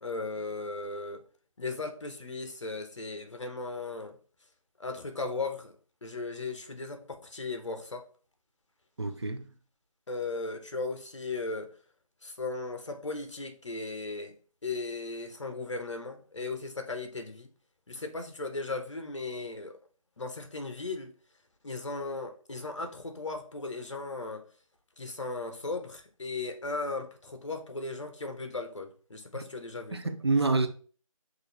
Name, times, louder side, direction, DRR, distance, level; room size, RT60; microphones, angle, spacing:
voice 1, 0.0-1.2 1.6-4.2 4.8-8.1 10.1-11.7 12.2-14.3 14.6-17.5 17.9-19.8 20.2-21.1 21.6-24.5 25.0-30.0, left 3 dB, 55° left, 1.0 m, -37 dB
voice 2, 9.0-9.4 29.9-30.7, right 3 dB, 45° right, 0.6 m, -27 dB
6.2 x 2.6 x 3.2 m
figure-of-eight pair, 165°, 18 cm